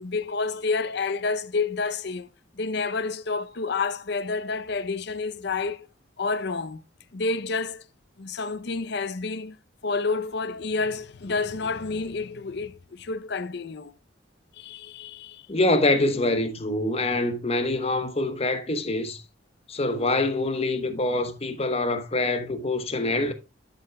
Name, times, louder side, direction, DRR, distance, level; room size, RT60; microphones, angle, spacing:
voice 1, 0.0-2.3 2.6-5.9 6.2-6.8 7.1-7.8 8.2-9.6 9.8-13.9 14.5-15.4, left 4 dB, 60° left, 0.6 m, -29 dB
voice 2, 15.5-19.2 19.7-23.3, left 2 dB, 35° left, 1.0 m, -25 dB
11.5 x 7.0 x 2.2 m
head